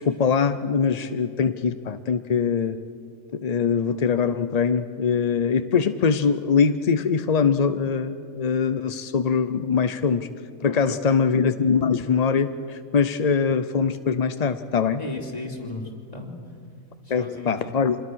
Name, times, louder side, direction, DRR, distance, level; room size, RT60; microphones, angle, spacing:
voice 1, 0.0-2.8 3.3-10.3 10.6-15.0 17.1-18.0, left 6 dB, 50° left, 10 dB, 0.5 m, -22 dB
voice 2, 10.6-11.2 15.0-16.4 17.0-17.7, left 2 dB, 25° left, 0 dB, 3.1 m, -35 dB
26.0 x 21.0 x 6.3 m, 2.3 s
omnidirectional pair, 1.5 m